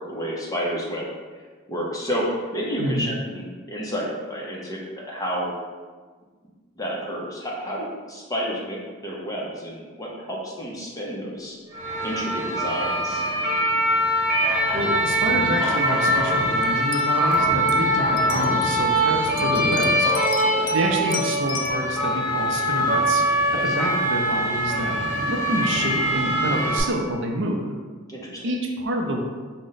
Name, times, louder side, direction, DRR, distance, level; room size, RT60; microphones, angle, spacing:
voice 1, 0.1-1.1 1.7-5.5 6.8-11.6 12.0-13.2 19.6-19.9 20.4-20.7 23.5-23.9 28.1-28.5, equal, 15° left, -3 dB, 0.6 m, -30 dB
sound 1, 11.7-26.8, equal, 5° right, 1.4 m, -22 dB
voice 2, 14.7-20.1 20.7-23.2 23.5-25.0 25.3-27.6 28.4-29.2, right 1 dB, 55° right, 1 dB, 0.5 m, -27 dB
sound 2, 16.6-16.7 16.9-17.4 17.7-17.8 18.2-18.8 19.4-20.8 21.1-21.7, left 8 dB, 75° left, 0.4 m, -34 dB
4.9 x 2.1 x 3.9 m, 1.4 s
head